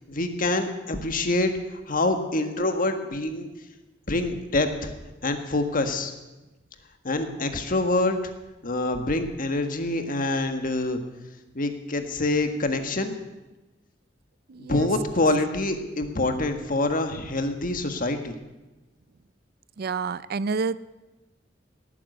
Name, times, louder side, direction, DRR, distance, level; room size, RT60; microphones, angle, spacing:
voice 1, 0.1-1.5 1.9-3.5 4.1-4.9 5.2-6.1 7.0-8.3 8.6-11.0 11.5-13.1 14.6-18.4, left 2 dB, 50° left, 7 dB, 1.6 m, -26 dB
voice 2, 14.5-14.9 19.8-20.8, right 4 dB, 55° right, 17 dB, 0.5 m, -28 dB
18.0 x 9.4 x 8.1 m, 1.1 s
head